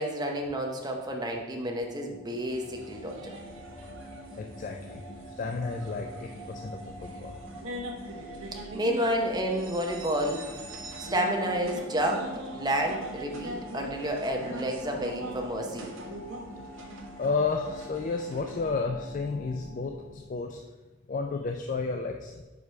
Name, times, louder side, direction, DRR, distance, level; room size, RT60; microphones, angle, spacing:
voice 1, 0.0-3.4 8.5-10.4 11.0-15.9, equal, 20° right, 1 dB, 0.8 m, -30 dB
sound 1, 1.5-20.4, equal, 25° left, 0.7 m, -46 dB
sound 2, 2.5-18.7, right 1 dB, 80° right, 1.1 m, -43 dB
voice 2, 4.4-5.0 5.4-7.4 17.2-20.6 21.1-22.4, left 4 dB, 40° left, 4 dB, 0.3 m, -32 dB
4.8 x 4.7 x 5.6 m, 1.2 s
head